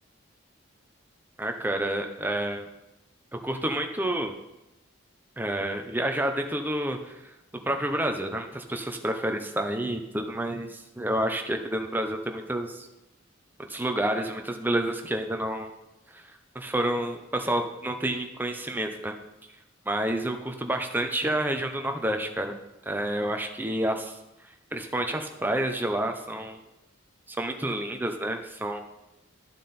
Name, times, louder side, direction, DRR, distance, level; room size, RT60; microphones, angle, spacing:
voice 1, 1.4-2.7 3.4-4.3 5.4-7.2 7.6-12.9 13.7-15.7 16.1-16.2 16.5-19.1 19.9-22.5 22.9-24.2 24.7-26.6 27.3-28.8, right 1 dB, 10° right, 4 dB, 0.8 m, -29 dB
11.5 x 7.1 x 4.3 m, 0.94 s
head